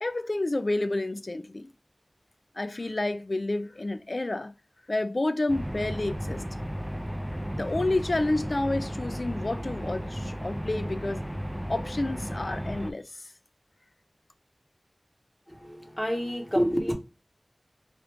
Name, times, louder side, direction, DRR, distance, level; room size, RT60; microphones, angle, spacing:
voice 1, 0.0-1.7 2.6-4.5 4.9-6.4 7.6-11.3 11.7-13.0, left 2 dB, 60° left, 0.3 m, -29 dB
sound 1, 5.5-12.9, equal, 15° right, 0.4 m, -34 dB
voice 2, 15.5-16.9, equal, 10° left, 0.8 m, -28 dB
3.0 x 2.4 x 3.3 m
wide cardioid pair, 45°, 0 cm